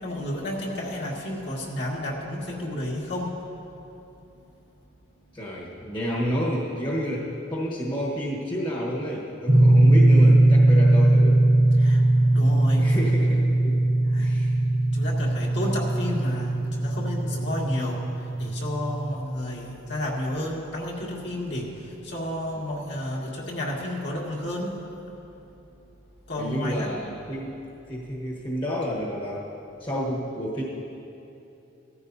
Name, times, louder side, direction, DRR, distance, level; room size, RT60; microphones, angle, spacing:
voice 1, 0.0-3.4 11.8-12.0 12.3-13.0 14.1-14.3 14.9-18.0 18.4-24.8 26.3-27.0, left 1 dB, 65° left, -4 dB, 2.1 m, -31 dB
voice 2, 5.3-11.4 12.8-13.8 14.2-14.5 17.3-17.4 26.4-27.6 27.9-29.5 29.8-30.6, equal, 25° left, -5 dB, 1.3 m, -30 dB
sound 1, 9.5-19.2, right 1 dB, 35° right, 0.8 m, -20 dB
16.5 x 14.0 x 2.7 m, 2.8 s
head